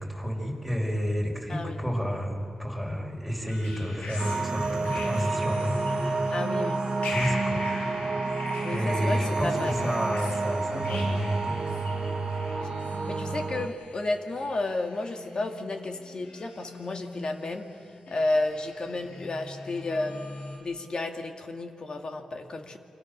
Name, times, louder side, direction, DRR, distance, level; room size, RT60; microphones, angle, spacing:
voice 1, 0.0-6.3 7.1-8.2 8.7-12.5, equal, 5° left, 0 dB, 5.5 m, -31 dB
voice 2, 1.5-1.8 6.3-6.8 8.6-9.7 13.1-17.7 18.1-22.8, left 2 dB, 45° left, 4 dB, 2.4 m, -32 dB
sound 1, 3.5-20.6, left 2 dB, 85° left, 6.6 m, -40 dB
sound 2, 4.2-13.7, right 3 dB, 45° right, 1.2 m, -30 dB
29.0 x 25.0 x 6.8 m, 2.5 s
wide cardioid pair, 105°, 2 cm